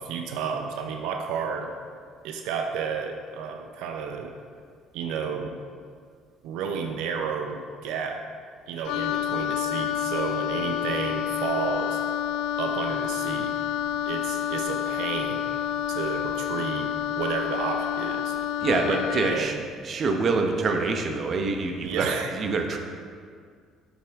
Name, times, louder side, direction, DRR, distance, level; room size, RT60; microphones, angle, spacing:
voice 1, 0.0-1.7 2.2-4.3 4.9-5.6 6.4-8.2 8.7-12.0 12.6-13.6 14.1-15.5 15.9-18.4 18.9-19.6 21.8-22.4, right 6 dB, 85° right, 4 dB, 0.6 m, -31 dB
Wind instrument woodwind instrument, 8.9-19.5, left 10 dB, 90° left, 0.3 m, -29 dB
voice 2, 18.6-19.5 19.8-22.8, right 3 dB, 40° right, 4 dB, 0.9 m, -26 dB
8.0 x 7.6 x 3.6 m, 2.1 s
cardioid pair, 120°, 0 cm